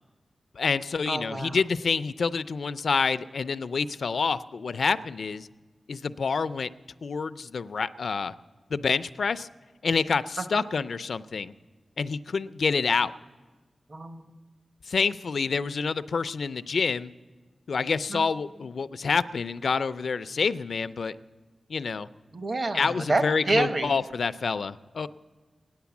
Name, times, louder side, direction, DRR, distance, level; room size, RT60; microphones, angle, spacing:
voice 1, 0.5-5.5 5.9-6.7 7.0-8.3 8.7-9.5 9.8-11.5 12.0-13.1 14.9-17.1 17.7-21.1 21.7-22.1 22.7-25.1, left 5 dB, 75° left, 14 dB, 0.4 m, -27 dB
voice 2, 1.1-1.6 10.4-10.6 13.9-14.3 18.1-18.2 22.3-24.0, right 2 dB, 50° right, 8 dB, 1.2 m, -28 dB
17.5 x 10.5 x 7.1 m, 1.3 s
wide cardioid pair, 70°, 0 cm